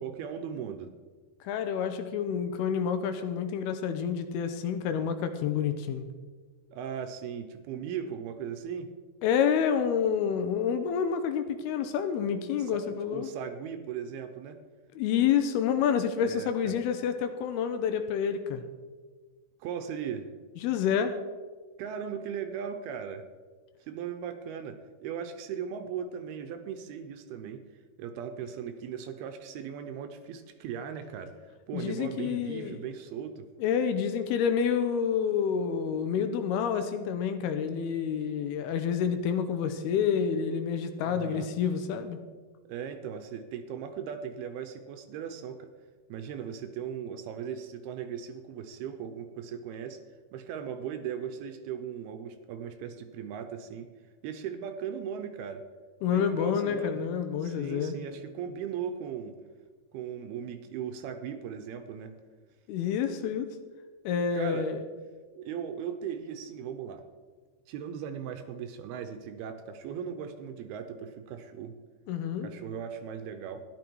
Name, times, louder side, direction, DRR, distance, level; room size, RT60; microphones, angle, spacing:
voice 1, 0.0-0.9 6.7-8.9 12.6-14.6 16.2-16.7 19.6-20.3 21.8-23.3 23.9-27.6 28.0-33.5 41.0-41.5 42.7-45.7 46.1-50.0 50.3-53.9 54.2-55.6 56.1-57.0 57.4-59.4 59.9-62.2 64.3-64.7 65.4-67.0 67.7-71.8 72.4-73.6, right 8 dB, 80° right, 8 dB, 2.5 m, -38 dB
voice 2, 1.4-6.1 9.2-13.3 15.0-18.6 20.6-21.2 31.7-32.8 33.6-42.2 56.0-58.0 62.7-63.5 64.1-64.8 72.1-72.5, left 7 dB, 80° left, 9 dB, 2.6 m, -28 dB
13.0 x 11.0 x 4.6 m, 1.4 s
omnidirectional pair, 4.8 m